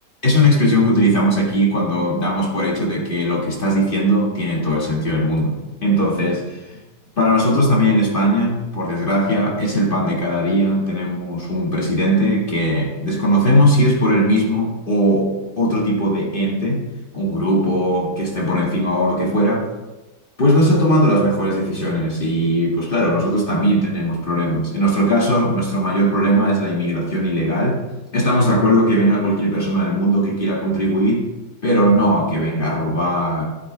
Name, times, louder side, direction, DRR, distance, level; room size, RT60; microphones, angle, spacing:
voice 1, 0.2-6.8 7.2-16.8 17.1-19.7 20.4-27.8 28.1-31.3 31.6-33.5, equal, 30° left, -3 dB, 2.1 m, -19 dB
12.5 x 8.1 x 3.3 m, 1.1 s
omnidirectional pair, 1.9 m